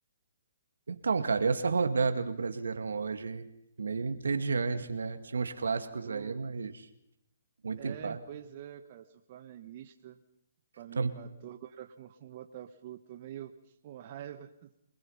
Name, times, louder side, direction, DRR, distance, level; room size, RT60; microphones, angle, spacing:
voice 1, 0.9-3.5 3.8-6.9 7.6-8.2 11.0-11.1, right 4 dB, 90° right, 8 dB, 2.1 m, -31 dB
voice 2, 6.0-6.4 7.8-10.2 10.8-13.5 13.8-14.7, right 11 dB, 40° right, 7 dB, 1.3 m, -46 dB
26.0 x 20.0 x 5.7 m, 0.78 s
hypercardioid pair, 155°, 0 cm